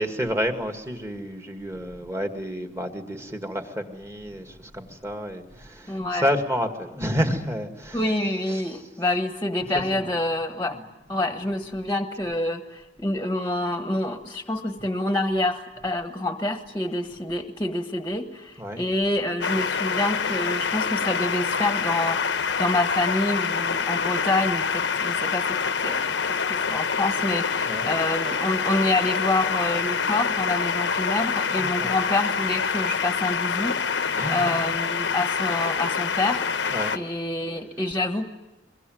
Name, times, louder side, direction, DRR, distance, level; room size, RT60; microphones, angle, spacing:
voice 1, 0.0-8.0 8.5-8.6 9.7-10.1 10.7-10.8 18.6-18.8 27.7-27.9 31.6-31.9 34.1-34.6 36.7-36.9, equal, 15° right, 6 dB, 2.0 m, -30 dB
voice 2, 5.9-6.3 7.9-10.8 11.1-26.0 26.3-38.3, left 2 dB, 10° left, 7 dB, 1.4 m, -27 dB
sound 1, 19.4-37.0, left 6 dB, 70° left, 1.1 m, -26 dB
23.0 x 22.5 x 9.3 m, 0.97 s
head